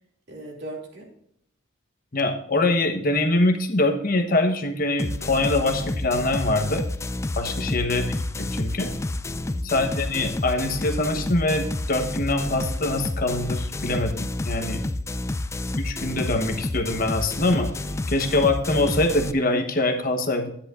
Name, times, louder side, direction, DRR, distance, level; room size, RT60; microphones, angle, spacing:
voice 1, 0.3-1.1 7.4-7.8 9.2-9.7 17.8-18.2, right 2 dB, 55° right, 0 dB, 2.8 m, -41 dB
voice 2, 2.1-6.8 7.4-8.9 9.6-14.8 15.8-17.7 18.1-20.5, left 2 dB, 45° left, 5 dB, 1.1 m, -24 dB
sound 1, 5.0-19.3, left 2 dB, 15° left, 0.3 m, -29 dB
11.0 x 10.0 x 2.5 m, 0.73 s
head